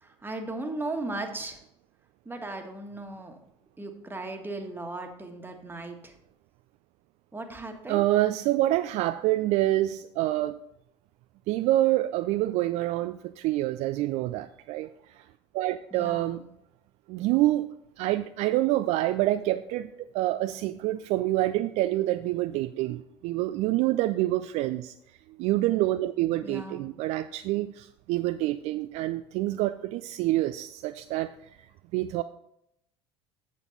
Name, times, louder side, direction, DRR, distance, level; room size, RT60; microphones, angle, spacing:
voice 1, 0.0-1.6 2.2-3.4 3.8-6.1 7.3-8.0 15.9-16.4 26.4-26.9, right 2 dB, 15° right, 4 dB, 1.5 m, -37 dB
voice 2, 7.9-10.6 11.5-15.2 15.5-16.4 17.1-17.7 18.0-24.9 25.4-31.3 31.9-32.2, right 15 dB, 50° right, 10 dB, 0.4 m, -27 dB
8.2 x 7.6 x 4.0 m, 0.77 s
figure-of-eight pair, 65°, 14 cm